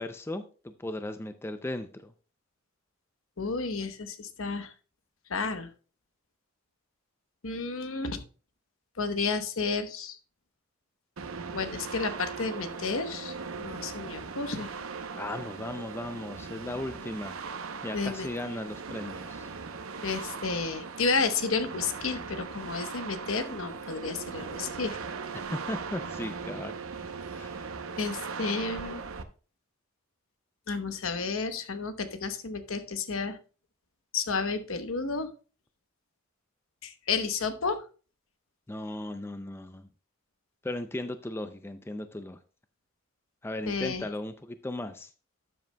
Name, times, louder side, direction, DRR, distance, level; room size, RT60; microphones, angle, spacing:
voice 1, 0.0-2.1 15.1-17.4 17.8-19.5 25.3-26.7 27.3-27.6 38.7-39.8 40.6-42.4 43.4-45.1, left 1 dB, 10° left, 10 dB, 0.3 m, -37 dB
voice 2, 3.4-4.7 5.3-5.7 7.4-8.2 9.0-10.2 11.5-14.7 17.9-18.3 20.0-25.0 28.0-29.0 30.7-33.4 34.1-35.3 36.8-37.8 43.7-44.0, left 4 dB, 70° left, 9 dB, 1.0 m, -31 dB
sound 1, 11.2-29.2, right 5 dB, 70° right, 0.7 m, -39 dB
12.0 x 7.7 x 2.2 m, 0.37 s
head